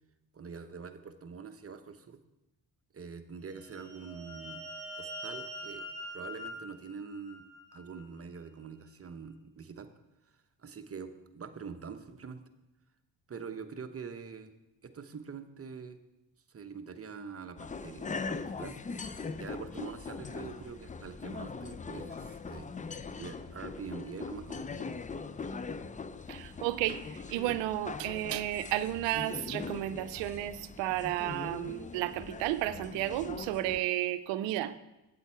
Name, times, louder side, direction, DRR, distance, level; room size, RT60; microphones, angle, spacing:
voice 1, 0.3-2.2 2.9-4.7 5.0-7.5 7.7-9.9 10.3-12.4 13.3-14.5 14.8-16.0 16.5-18.8 19.4-22.7 23.2-24.9, right 5 dB, 30° right, 9 dB, 0.9 m, -44 dB
sound 1, 3.5-8.0, equal, ahead, 3.0 m, -44 dB
sound 2, 17.6-33.8, left 4 dB, 20° left, 0.5 m, -41 dB
voice 2, 26.3-34.7, right 14 dB, 85° right, 13 dB, 0.6 m, -33 dB
8.6 x 8.0 x 4.5 m, 0.96 s
supercardioid pair, 65°, 43 cm